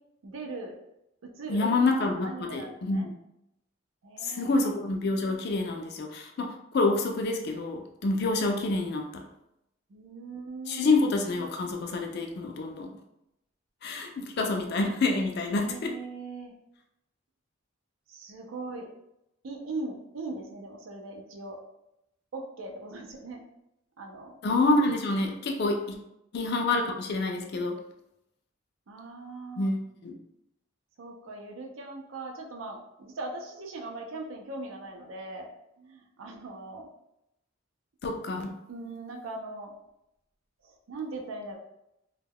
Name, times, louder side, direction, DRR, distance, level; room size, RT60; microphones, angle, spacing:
voice 1, 0.2-0.8 1.4-1.7 2.2-3.1 4.0-4.7 9.9-11.0 15.4-16.5 18.1-18.9 19.4-21.6 22.3-23.4 24.0-24.4 25.5-25.7 28.9-29.7 31.0-35.5 35.8-36.9 38.7-39.7 40.6-41.6, right 3 dB, 75° right, 1 dB, 0.5 m, -40 dB
voice 2, 1.5-3.1 4.2-9.2 10.7-12.9 13.8-16.0 24.4-26.0 26.3-27.8 29.6-30.2 38.0-38.5, left 2 dB, 50° left, 3 dB, 0.4 m, -27 dB
2.2 x 2.1 x 3.4 m, 0.85 s
head